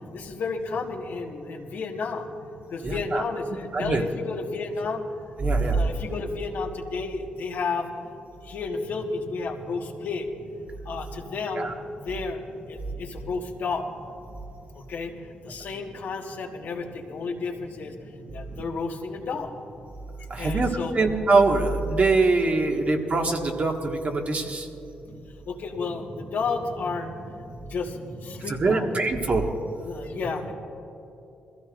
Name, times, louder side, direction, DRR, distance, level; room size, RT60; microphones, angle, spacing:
voice 1, 0.1-5.0 5.6-7.9 8.4-10.3 10.8-11.7 12.0-12.4 12.7-13.9 14.7-19.6 20.2-21.0 25.4-27.1 27.6-28.9 29.2-29.3 29.8-30.5, left 4 dB, 70° left, 1 dB, 1.6 m, -32 dB
voice 2, 2.8-3.2 3.7-4.0 5.4-5.8 11.6-11.7 20.3-24.7 28.3-29.4 30.1-30.2, right 3 dB, 45° right, 2 dB, 1.7 m, -23 dB
22.0 x 15.0 x 2.6 m, 2.9 s
supercardioid pair, 60°, 3 cm